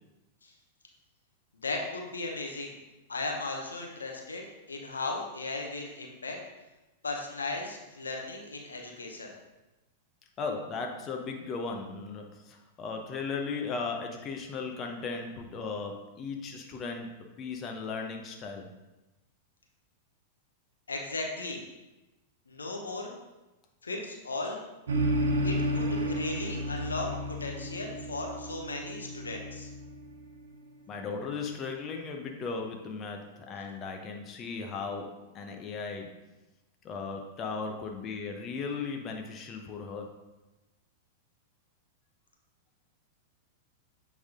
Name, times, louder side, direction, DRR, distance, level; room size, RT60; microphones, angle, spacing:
voice 1, 1.6-2.7 3.1-6.4 7.0-9.3 20.9-21.6 22.5-23.1 23.8-24.6 25.4-29.7, left 3 dB, 90° left, 1 dB, 0.9 m, -36 dB
voice 2, 10.4-17.1 17.4-18.7 30.9-36.1 36.8-40.1, left 4 dB, 30° left, 2 dB, 0.9 m, -36 dB
sound 1, 24.9-30.5, equal, 80° right, 0.8 m, -32 dB
8.0 x 3.6 x 3.7 m, 1.0 s
hypercardioid pair, 100°, 0 cm